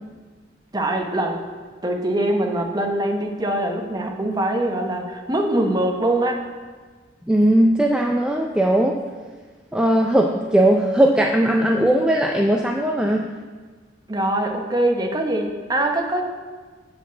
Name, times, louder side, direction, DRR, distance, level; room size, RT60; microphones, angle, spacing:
voice 1, 0.7-1.4 1.8-6.4 14.1-16.2, right 1 dB, 20° right, 3 dB, 0.8 m, -23 dB
voice 2, 7.3-9.0 9.7-13.3, right 1 dB, 5° right, 1 dB, 0.4 m, -18 dB
7.8 x 4.9 x 7.2 m, 1.4 s
head